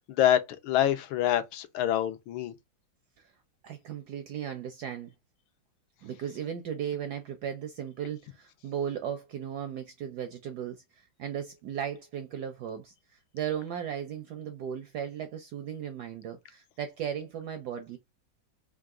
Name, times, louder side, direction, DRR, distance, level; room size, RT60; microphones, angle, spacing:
voice 1, 0.1-2.5, left 11 dB, 85° left, 1.5 m, -26 dB
voice 2, 3.6-5.1 6.0-12.9 13.3-18.0, right 9 dB, 75° right, 0.9 m, -36 dB
3.8 x 2.4 x 3.5 m
omnidirectional pair, 2.2 m